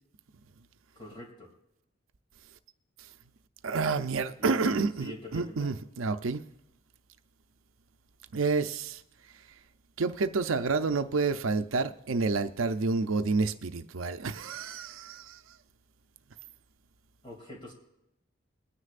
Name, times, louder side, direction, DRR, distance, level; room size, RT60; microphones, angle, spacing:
voice 1, 1.0-1.5 4.4-5.7 17.2-17.7, left 1 dB, 25° left, 2.8 m, -43 dB
voice 2, 3.6-6.4 8.3-9.0 10.0-15.4, right 4 dB, 85° right, 0.6 m, -29 dB
22.0 x 9.8 x 2.5 m
head